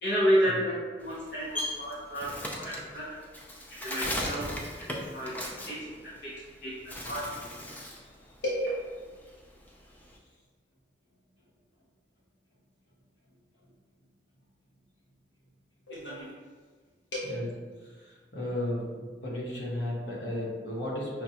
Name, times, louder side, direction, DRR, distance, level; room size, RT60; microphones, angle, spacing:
voice 1, 0.0-3.2 3.8-4.5 5.1-5.3 5.7-5.8 6.0-6.3 6.6-6.7 7.1-7.2 8.4-8.5 15.9-16.3 17.1-17.3, equal, 65° left, -8 dB, 0.7 m, -30 dB
Bird, 1.0-6.5 6.8-8.1 8.4-10.2, left 1 dB, 10° left, 0.3 m, -37 dB
voice 2, 17.8-21.2, left 1 dB, 80° left, -5 dB, 1.1 m, -34 dB
5.6 x 2.2 x 2.8 m, 1.5 s
head